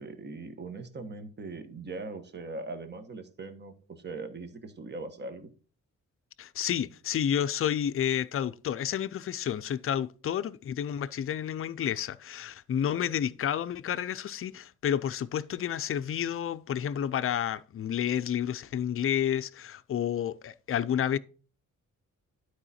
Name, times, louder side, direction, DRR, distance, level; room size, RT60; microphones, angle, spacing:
voice 1, 0.0-5.5, right 3 dB, 35° right, 1.3 m, -40 dB
voice 2, 6.4-21.2, left 9 dB, 45° left, 0.5 m, -30 dB
12.0 x 4.8 x 4.2 m
wide cardioid pair, 160°, 31 cm